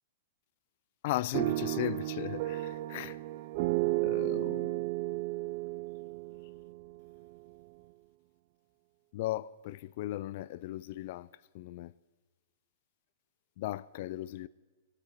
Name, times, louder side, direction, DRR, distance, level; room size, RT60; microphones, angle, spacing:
voice 1, 1.0-3.2 4.0-4.7 9.1-11.3 11.5-11.9 13.6-14.5, left 15 dB, 55° left, 0.4 m, -37 dB
sound 1, 1.3-7.4, right 19 dB, 50° right, 0.3 m, -33 dB
25.0 x 8.5 x 4.5 m
hypercardioid pair, 145°, 0 cm